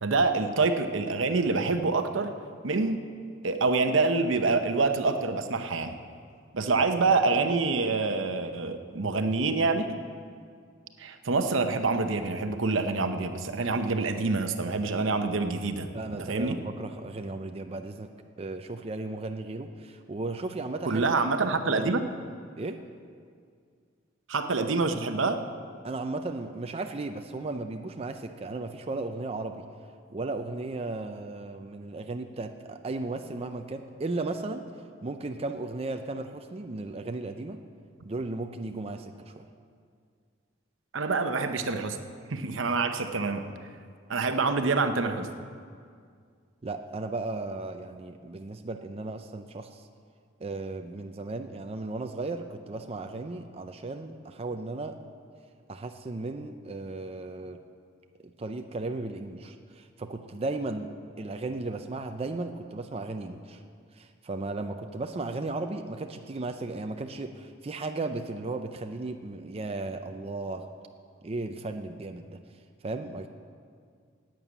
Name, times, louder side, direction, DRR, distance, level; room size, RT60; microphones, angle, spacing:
voice 1, 0.0-2.3 2.6-3.0 3.4-5.9 6.5-10.0 11.0-15.9 16.2-16.6 20.8-22.0 24.3-25.4 40.9-42.0 42.3-43.4 44.1-45.3, right 3 dB, 75° right, 8 dB, 0.8 m, -26 dB
voice 2, 15.9-18.1 18.4-21.1 21.4-21.9 22.6-22.8 25.8-29.6 30.1-34.6 35.0-37.6 38.0-39.5 46.6-49.8 50.4-55.0 55.7-57.6 58.2-60.9 61.2-63.6 63.9-70.7 71.2-72.4 72.8-73.3, right 2 dB, 30° right, 6 dB, 0.5 m, -35 dB
11.0 x 9.1 x 8.2 m, 2.2 s
head